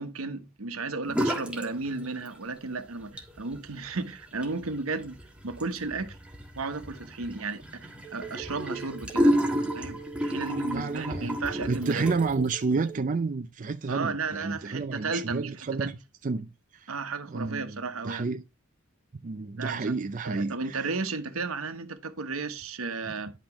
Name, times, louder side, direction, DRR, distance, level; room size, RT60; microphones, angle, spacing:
voice 1, 0.0-5.2 5.4-6.2 6.6-9.5 9.7-12.2 13.9-15.5 15.8-15.9 16.9-18.3 19.6-19.9 20.2-23.3, right 3 dB, 80° right, 1.1 m, -34 dB
sound 1, 1.1-1.7 2.0-2.6 3.0-12.5, equal, 5° right, 1.5 m, -31 dB
Telephone, 8.0-13.3, right 7 dB, 10° left, 1.3 m, -43 dB
voice 2, 10.7-15.9 16.2-16.5 16.8-16.9 17.3-18.4 19.2-20.9 23.0-23.1, right 4 dB, 40° right, 0.4 m, -30 dB
10.0 x 5.8 x 3.0 m
head